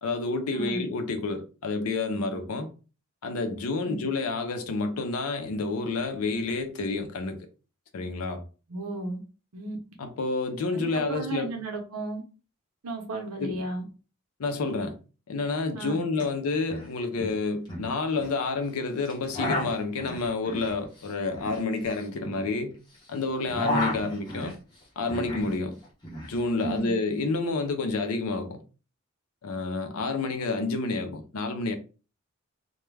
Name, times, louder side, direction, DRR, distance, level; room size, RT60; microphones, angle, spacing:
voice 1, 0.0-2.7 3.2-7.5 7.9-8.4 10.0-11.5 13.4-13.6 14.4-15.0 15.3-22.8 23.1-24.5 25.0-25.8 26.2-28.6 29.4-31.7, left 3 dB, 85° left, 0.5 m, -29 dB
voice 2, 8.7-9.2 9.5-9.8 10.7-12.2 12.8-13.8 15.8-16.3 26.6-26.9, right 2 dB, 85° right, 0.7 m, -34 dB
sound 1, 16.1-16.2 16.5-16.9 17.2-18.4 19.0-23.0 23.3-25.6 25.8-26.8, left 1 dB, 20° left, 0.8 m, -33 dB
2.2 x 2.1 x 3.1 m
head